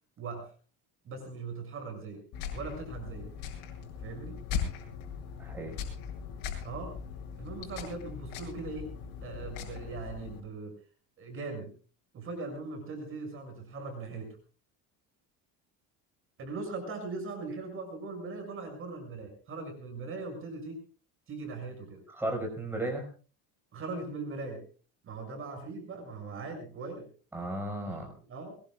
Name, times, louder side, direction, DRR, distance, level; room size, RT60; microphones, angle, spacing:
voice 1, 0.2-0.5 1.0-2.2 2.5-3.3 4.0-4.4 6.6-7.0 7.4-10.8 11.2-11.7 12.1-14.4 16.4-20.8 21.3-22.0 23.7-24.6 25.0-27.1 27.9-28.6, right 3 dB, 35° right, 4 dB, 6.7 m, -40 dB
sound 1, 2.3-10.4, left 7 dB, 65° left, 7.9 m, -39 dB
voice 2, 5.4-5.8 22.1-23.1 27.3-28.1, right 1 dB, 5° right, 1 dB, 5.4 m, -34 dB
22.5 x 22.0 x 2.4 m, 0.38 s
cardioid pair, 160°, 37 cm